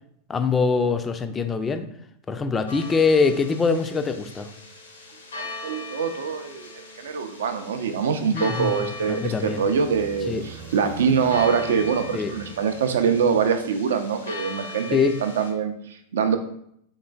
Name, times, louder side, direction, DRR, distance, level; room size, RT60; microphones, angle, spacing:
voice 1, 0.3-1.9 2.3-4.5 8.3-9.6 10.3-10.4 12.1-12.3 14.9-15.2, left 4 dB, 20° left, 9 dB, 0.3 m, -23 dB
sound 1, 2.7-15.5, left 3 dB, 70° left, 0.6 m, -40 dB
voice 2, 5.3-16.4, right 6 dB, 60° right, 8 dB, 0.4 m, -24 dB
sound 2, 8.3-14.0, right 5 dB, 40° right, 0.8 m, -44 dB
3.8 x 3.7 x 2.3 m, 0.70 s
figure-of-eight pair, 90°, 0 cm